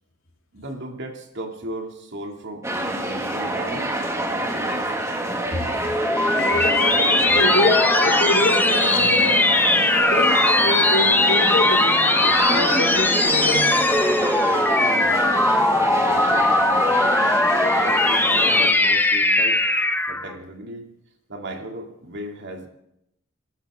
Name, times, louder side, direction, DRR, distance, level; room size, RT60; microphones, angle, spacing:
voice 1, 0.5-2.7 3.0-3.9 4.5-4.9 14.8-15.5 16.0-17.2 17.7-18.0 18.4-19.6 20.1-20.9 21.3-22.7, right 1 dB, 55° right, 2.7 m, -36 dB
sound 1, 2.6-18.7, right 1 dB, 15° right, 2.1 m, -26 dB
voice 2, 5.5-5.9 6.3-9.8 10.1-13.8, left 1 dB, 70° left, 3.8 m, -26 dB
sound 2, 5.6-20.3, left 2 dB, 10° left, 1.0 m, -19 dB
26.5 x 13.5 x 3.8 m
head